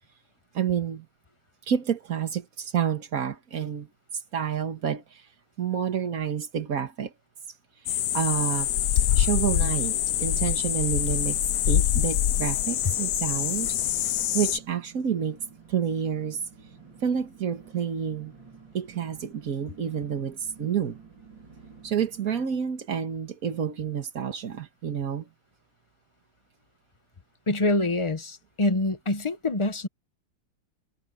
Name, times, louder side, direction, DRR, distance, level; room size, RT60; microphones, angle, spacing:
voice 1, 0.5-1.1 1.7-3.9 4.3-5.2 5.6-7.1 7.9-8.7 9.2-11.4 11.7-13.8 14.3-15.4 15.7-16.4 17.0-18.3 18.7-21.0 21.8-25.3, right 8 dB, 50° right, 1.9 m, -29 dB
sound 1, 7.9-14.6, left 11 dB, 65° left, 1.0 m, -25 dB
sound 2, 13.7-22.4, right 6 dB, 85° right, 5.1 m, -51 dB
voice 2, 27.5-29.9, left 2 dB, 25° left, 0.8 m, -25 dB
omnidirectional pair, 2.0 m